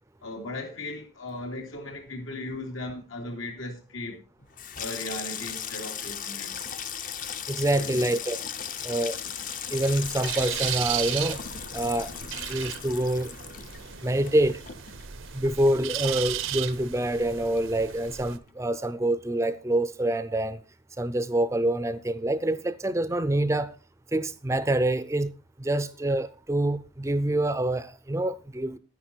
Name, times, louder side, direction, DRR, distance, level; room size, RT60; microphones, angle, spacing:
voice 1, 0.2-4.2 4.7-6.6 7.7-8.0, left 2 dB, 85° left, 2.9 m, -37 dB
Water tap faucet / Sink (filling or washing), 4.4-17.3 17.6-18.2 18.5-18.8, left 8 dB, 40° left, 0.7 m, -38 dB
voice 2, 7.5-8.4 8.8-9.2 9.7-11.4 11.7-12.1 12.5-13.3 14.0-14.6 15.3-20.6 21.0-23.7 24.1-25.3 25.6-28.8, right 1 dB, 15° right, 0.4 m, -26 dB
sound 1, 9.8-18.4, right 11 dB, 85° right, 0.8 m, -35 dB
10.0 x 9.7 x 4.4 m
head